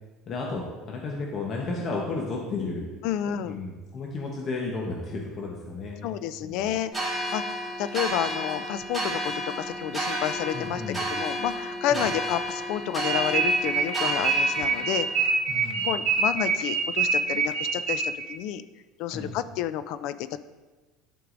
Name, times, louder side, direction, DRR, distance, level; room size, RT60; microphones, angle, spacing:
voice 1, 0.3-2.8 3.4-6.2 6.4-6.6 10.5-11.0 11.9-12.0 15.5-15.9 19.1-19.3, left 3 dB, 35° left, -2 dB, 0.9 m, -33 dB
voice 2, 3.0-3.6 6.0-6.9 7.3-7.4 7.8-15.3 15.8-18.6 19.0-20.4, left 11 dB, 65° left, 13 dB, 0.3 m, -30 dB
sound 1, 6.9-15.1, equal, 5° left, 2.3 m, -32 dB
sound 2, 13.0-18.3, right 4 dB, 55° right, 0.8 m, -25 dB
11.0 x 4.6 x 2.6 m, 1.2 s
cardioid pair, 145°, 0 cm